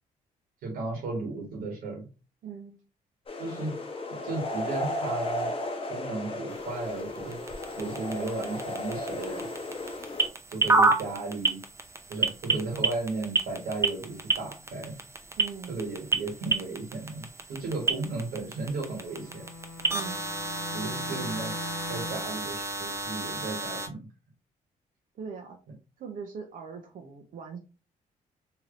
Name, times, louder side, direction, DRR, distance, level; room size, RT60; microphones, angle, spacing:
voice 1, 0.6-2.1 3.4-3.7 4.2-5.5 5.9-7.4 7.8-9.5 10.5-11.6 12.1-14.9 15.7-19.4 20.7-21.5 21.9-24.0, right 3 dB, 85° right, 1 dB, 1.3 m, -35 dB
voice 2, 2.4-2.7 15.4-15.8 19.9-20.2 21.1-21.3 25.1-25.6 26.0-27.6, right 6 dB, 65° right, 2 dB, 0.6 m, -40 dB
sound 1, 3.3-10.3, left 1 dB, 40° left, 0.8 m, -35 dB
sound 2, 6.5-23.9, right 3 dB, 20° right, 0.5 m, -31 dB
Bowed string instrument, 19.0-22.4, left 3 dB, 75° left, 0.6 m, -41 dB
3.2 x 2.8 x 2.4 m, 0.32 s
cardioid pair, 85°, 15 cm